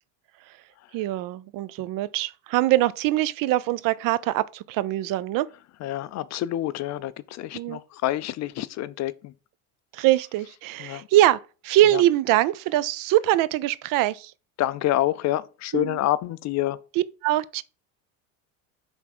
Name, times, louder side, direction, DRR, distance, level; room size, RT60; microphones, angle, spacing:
voice 1, 0.9-5.5 7.5-7.8 9.9-14.3 15.7-16.0 17.0-17.6, right 15 dB, 55° right, 0.5 m, -23 dB
voice 2, 5.8-9.3 10.8-11.1 11.9-12.0 14.6-16.8, left 14 dB, 45° left, 0.5 m, -27 dB
5.9 x 3.6 x 5.9 m
supercardioid pair, 105°, 40 cm